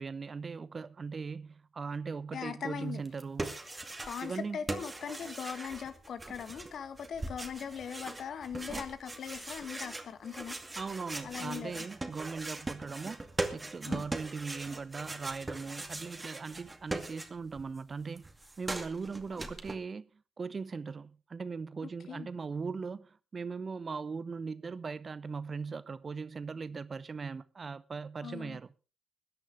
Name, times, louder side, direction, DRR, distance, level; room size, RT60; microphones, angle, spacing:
voice 1, 0.0-3.6 4.2-4.6 10.8-18.3 18.6-20.1 20.4-28.7, right 5 dB, 40° right, 0.8 m, -39 dB
voice 2, 2.3-3.0 4.1-10.6 11.2-11.9 13.9-14.0 21.8-22.3 28.2-28.6, left 7 dB, 55° left, 1.6 m, -40 dB
sound 1, 3.0-4.4 4.7-17.6 17.9-19.7, right 2 dB, 20° right, 2.2 m, -40 dB
21.0 x 10.5 x 3.5 m
figure-of-eight pair, 40°, 0 cm